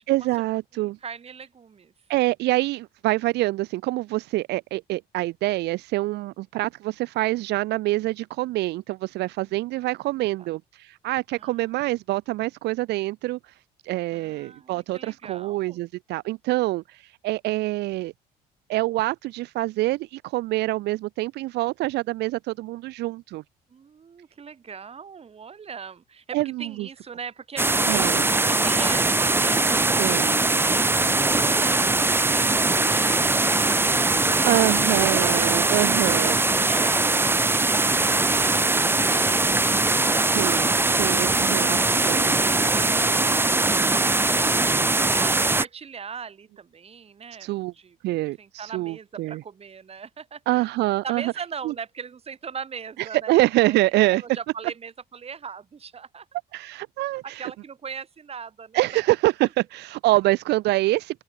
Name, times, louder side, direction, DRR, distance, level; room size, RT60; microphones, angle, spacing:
voice 1, 0.1-1.0 2.1-13.5 13.8-18.1 18.7-23.4 26.3-26.9 27.9-28.2 30.0-30.3 34.4-36.4 40.3-40.7 41.0-42.3 47.4-47.7 48.0-49.4 50.5-51.2 51.7-51.8 53.3-54.2 56.5-57.5 58.7-61.2, right 18 dB, 80° right, 1.7 m, -25 dB
voice 2, 0.7-1.9 11.3-11.8 14.1-15.8 23.7-30.3 32.1-37.5 45.1-48.0 48.4-50.7 51.0-56.4 57.4-58.8, right 6 dB, 35° right, 7.8 m, -41 dB
sound 1, 27.6-45.6, right 2 dB, 15° right, 1.2 m, -21 dB
open air
cardioid pair, 110°, 17 cm